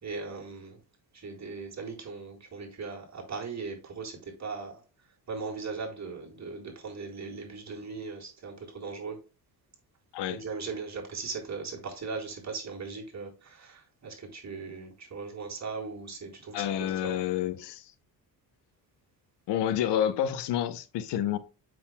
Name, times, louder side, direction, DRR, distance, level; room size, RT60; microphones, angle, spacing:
voice 1, 0.0-0.8 1.1-4.8 5.3-9.2 10.3-16.7 17.0-17.2, right 4 dB, 40° right, 3.8 m, -38 dB
voice 2, 16.5-17.9 19.5-21.4, left 10 dB, 80° left, 0.8 m, -29 dB
7.5 x 6.5 x 2.2 m
cardioid pair, 85°, 41 cm